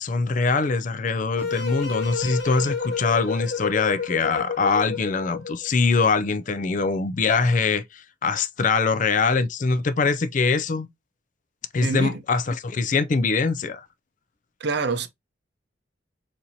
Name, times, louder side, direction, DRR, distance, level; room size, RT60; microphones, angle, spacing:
voice 1, 0.0-10.9 11.7-13.9, left 4 dB, 40° left, 0.4 m, -23 dB
sound 1, 1.4-5.7, left 5 dB, 55° left, 1.4 m, -30 dB
voice 2, 11.8-12.2 14.6-15.1, right 4 dB, 60° right, 0.6 m, -26 dB
4.2 x 2.6 x 2.7 m
head